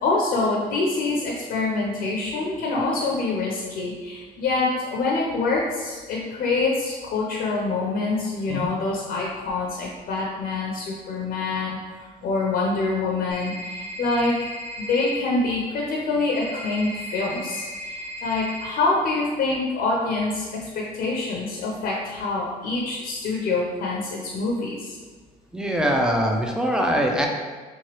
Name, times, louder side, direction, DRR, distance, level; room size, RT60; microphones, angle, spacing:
voice 1, 0.0-14.5 14.8-25.0, left 3 dB, 60° left, -3 dB, 0.5 m, -26 dB
sound 1, 13.3-15.1 16.3-18.7, equal, 85° right, 0.7 m, -36 dB
voice 2, 25.5-27.3, equal, 5° right, 1 dB, 0.3 m, -22 dB
3.0 x 2.3 x 2.9 m, 1.4 s
cardioid pair, 110°, 17 cm